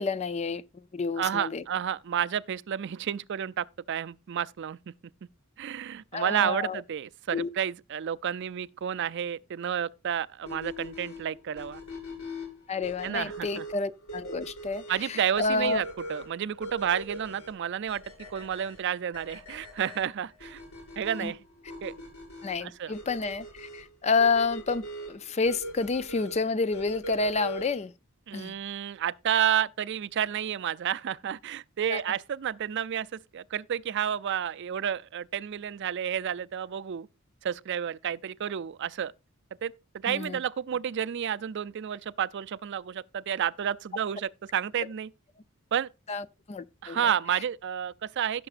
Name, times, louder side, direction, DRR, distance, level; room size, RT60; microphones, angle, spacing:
voice 1, 0.0-1.6 6.1-6.8 7.3-7.5 12.7-15.8 21.2-21.3 22.4-24.8 25.1-27.9 28.3-28.6 31.9-32.0 40.1-40.4 46.1-47.1, left 4 dB, 30° left, 0.4 m, -29 dB
voice 2, 1.2-4.9 5.6-11.8 13.0-13.6 14.9-15.8 16.1-18.0 18.3-20.6 21.0-21.4 21.8-21.9 22.6-22.9 28.3-37.1 37.4-39.1 39.6-45.1 45.7-45.9 46.8-48.5, right 9 dB, 55° right, 0.4 m, -31 dB
sound 1, 10.5-27.9, equal, 85° left, 6.2 m, -41 dB
16.5 x 6.8 x 2.5 m
head